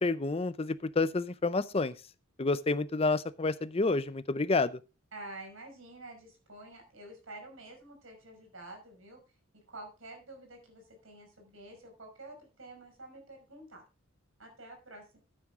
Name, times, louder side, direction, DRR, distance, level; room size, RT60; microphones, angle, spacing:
voice 1, 0.0-1.9 2.4-4.8, left 3 dB, 30° left, 0.5 m, -29 dB
voice 2, 5.1-9.2 9.5-13.8 14.4-15.2, right 2 dB, 75° right, 5.8 m, -49 dB
13.5 x 9.0 x 3.7 m
head